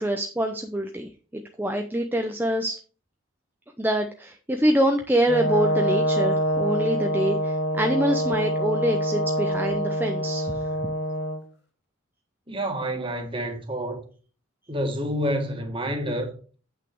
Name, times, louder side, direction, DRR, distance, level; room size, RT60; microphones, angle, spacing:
voice 1, 0.0-2.8 3.8-10.6, right 1 dB, 10° right, 0.6 m, -25 dB
Brass instrument, 5.3-11.4, equal, 55° left, 1.7 m, -25 dB
voice 2, 12.5-14.0 14.7-16.6, equal, 25° right, 1.8 m, -28 dB
8.3 x 6.1 x 4.6 m
head